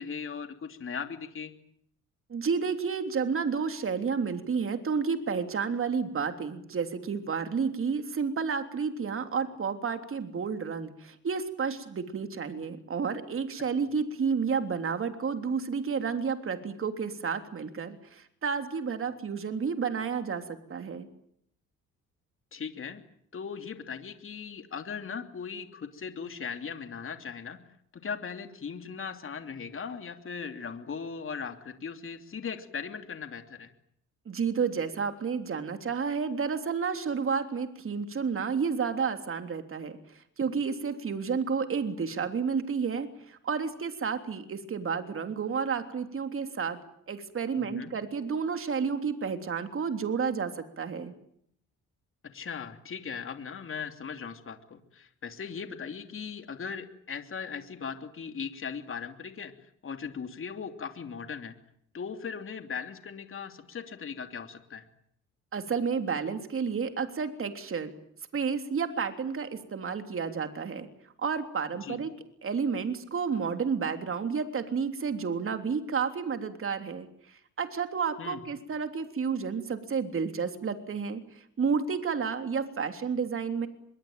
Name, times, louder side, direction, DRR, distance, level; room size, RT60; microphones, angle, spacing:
voice 1, 0.0-1.5 22.5-23.0 23.3-27.6 27.9-33.7 47.6-47.9 52.3-59.5 59.8-61.5 61.9-64.8 71.8-72.0 78.2-78.4, left 6 dB, 45° left, 7 dB, 3.0 m, -38 dB
voice 2, 2.3-20.4 20.7-21.1 34.2-40.0 40.4-46.8 47.1-51.1 65.5-67.9 68.3-70.9 71.2-72.1 72.4-77.1 77.6-81.2 81.6-83.7, right 6 dB, 45° right, 7 dB, 3.4 m, -31 dB
26.0 x 22.5 x 9.1 m, 0.70 s
cardioid pair, 90°, 30 cm